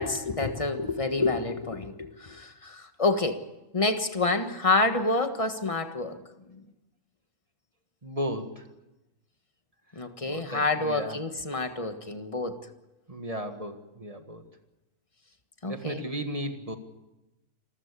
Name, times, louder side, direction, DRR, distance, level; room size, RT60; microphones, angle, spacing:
voice 1, 0.0-3.4 3.7-6.2 6.5-6.6 9.9-12.6 15.6-16.0, left 3 dB, 25° left, 1.5 m, -28 dB
voice 2, 8.0-8.7 10.2-11.2 13.1-14.4 15.6-16.8, equal, 25° right, 1.7 m, -35 dB
27.5 x 14.5 x 8.3 m
omnidirectional pair, 1.5 m